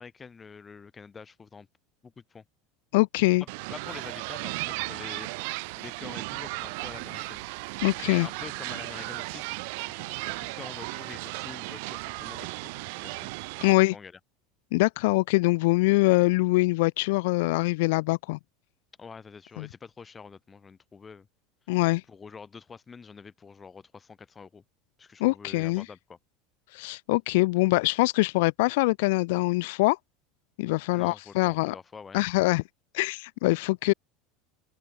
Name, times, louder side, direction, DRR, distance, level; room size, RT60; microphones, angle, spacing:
voice 1, 0.0-1.7 2.0-2.4 3.4-7.5 7.9-9.5 9.8-13.3 13.6-14.2 19.0-21.3 22.1-24.6 25.0-26.2 30.9-32.2, left 5 dB, 20° left, 4.0 m, -46 dB
voice 2, 2.9-3.4 7.8-8.3 13.6-13.9 14.7-18.4 19.6-19.7 21.7-22.0 25.2-25.8 26.7-30.0 30.6-31.7 32.1-32.6 32.9-33.9, left 23 dB, 75° left, 1.0 m, -23 dB
sound 1, 3.5-13.7, right 29 dB, 70° right, 0.7 m, -36 dB
supercardioid pair, 115°, 0 cm